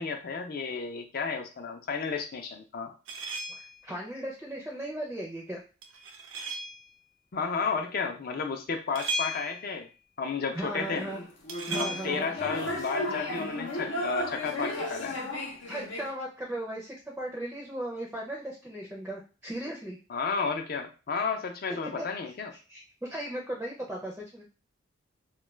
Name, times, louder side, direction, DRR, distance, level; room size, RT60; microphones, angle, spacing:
voice 1, 0.0-2.9 7.3-9.9 10.2-11.0 11.8-15.2 20.1-22.5, left 5 dB, 50° left, 5 dB, 0.5 m, -32 dB
sound 1, 3.1-3.8 5.8-6.9 9.0-9.8 11.5-12.1, right 2 dB, 85° right, 0.5 m, -35 dB
voice 2, 3.5-5.6 10.5-11.2 11.7-12.3 15.7-20.0 22.0-22.1 22.7-24.4, right 1 dB, 10° right, -2 dB, 0.4 m, -37 dB
sound 2, 10.8-16.1, left 1 dB, 85° left, 0.7 m, -34 dB
2.3 x 2.2 x 3.1 m, 0.33 s
head